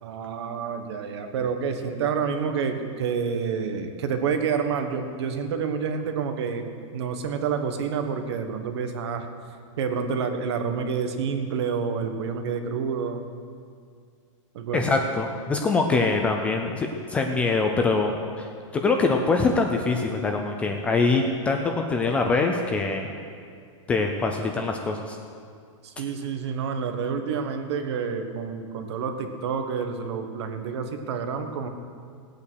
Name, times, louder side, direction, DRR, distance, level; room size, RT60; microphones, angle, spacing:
voice 1, 0.0-6.6 6.9-9.3 9.8-13.3 14.5-15.0 25.8-31.7, right 6 dB, 55° right, 7 dB, 1.3 m, -28 dB
voice 2, 14.7-18.5 18.7-23.1 23.9-25.2, left 3 dB, 10° left, 3 dB, 0.3 m, -24 dB
17.0 x 8.5 x 6.3 m, 2.2 s
supercardioid pair, 175°, 17 cm